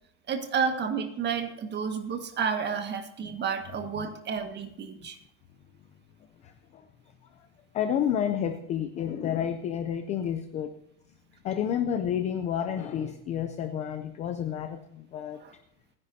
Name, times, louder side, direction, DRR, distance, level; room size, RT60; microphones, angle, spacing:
voice 1, 0.3-5.2 15.4-15.5, right 6 dB, 20° right, 6 dB, 1.8 m, -31 dB
voice 2, 7.7-10.7 11.4-15.4, left 9 dB, 15° left, 9 dB, 0.4 m, -30 dB
29.0 x 10.5 x 2.8 m, 0.79 s
supercardioid pair, 145°, 47 cm